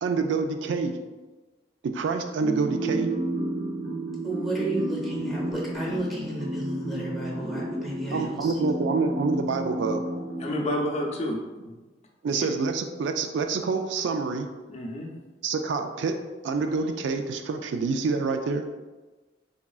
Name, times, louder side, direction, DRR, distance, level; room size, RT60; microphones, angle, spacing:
voice 1, 0.0-0.9 1.8-3.1 8.1-10.0 12.2-14.5 15.4-16.2 16.4-18.7, right 4 dB, 70° right, 6 dB, 0.3 m, -27 dB
sound 1, 2.4-11.2, right 1 dB, 50° right, 0.8 m, -31 dB
voice 2, 4.2-8.5, right 1 dB, ahead, -5 dB, 0.9 m, -32 dB
voice 3, 10.4-11.8 12.3-12.5 14.7-15.1, left 1 dB, 35° left, -1 dB, 0.5 m, -30 dB
3.9 x 3.5 x 2.3 m, 1.2 s
head